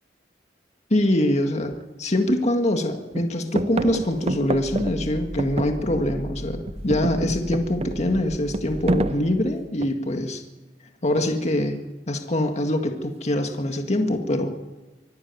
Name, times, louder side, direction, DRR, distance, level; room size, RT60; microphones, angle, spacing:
voice 1, 0.9-1.7 2.0-6.6 6.8-10.4 11.0-11.8 12.1-14.5, left 1 dB, 40° left, 4 dB, 1.9 m, -24 dB
sound 1, 1.7-1.8 2.3-2.8 3.1-6.3 6.6-10.2 11.2-11.6, right 2 dB, 35° right, 0.6 m, -30 dB
sound 2, 3.8-9.1, equal, ahead, 3.6 m, -37 dB
24.5 x 13.0 x 9.6 m, 1.1 s
head